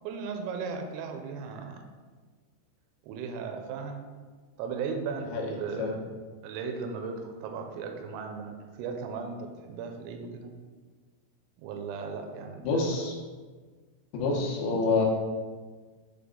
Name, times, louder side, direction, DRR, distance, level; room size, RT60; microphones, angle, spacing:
voice 1, 0.0-1.8 3.1-4.1 4.6-6.0 6.4-10.5 11.6-12.8, right 5 dB, 90° right, 4 dB, 3.3 m, -36 dB
voice 2, 12.6-13.2 14.1-15.1, left 3 dB, 80° left, -1 dB, 3.5 m, -27 dB
8.7 x 3.5 x 3.7 m, 1.4 s
omnidirectional pair, 5.8 m